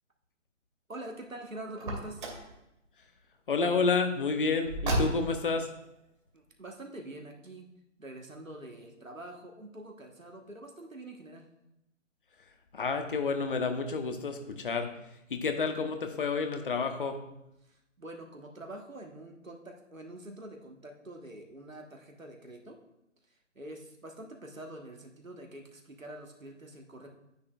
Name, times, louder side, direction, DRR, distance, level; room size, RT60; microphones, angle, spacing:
voice 1, 0.9-2.3 6.3-7.7 8.0-11.5 17.6-22.8 23.3-27.1, right 1 dB, 90° right, 2 dB, 1.4 m, -45 dB
Car, 1.7-2.5 4.6-5.5, right 1 dB, 40° right, 2.2 m, -32 dB
voice 2, 3.5-5.7 12.7-14.9 15.3-17.2, left 4 dB, 40° left, 6 dB, 1.0 m, -30 dB
9.6 x 8.5 x 2.4 m, 0.87 s
figure-of-eight pair, 140°, 39 cm